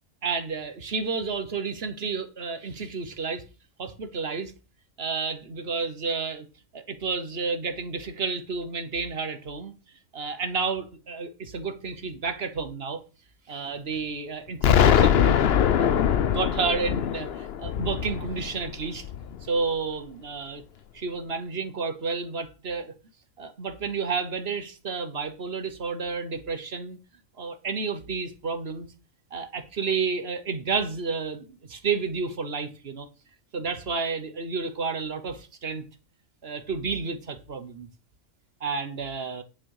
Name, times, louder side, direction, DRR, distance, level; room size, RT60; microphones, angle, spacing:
voice 1, 0.2-3.4 3.8-4.5 5.0-6.5 6.7-9.7 10.1-13.0 13.5-15.4 15.8-19.0 19.4-20.6 20.9-22.9 23.4-27.0 27.4-28.9 29.3-33.1 33.5-35.8 36.4-37.9 38.6-39.4, right 4 dB, 50° right, 1.3 m, -31 dB
Explosion, 14.6-19.5, left 9 dB, 55° left, 0.8 m, -22 dB
10.0 x 6.4 x 4.8 m
omnidirectional pair, 1.4 m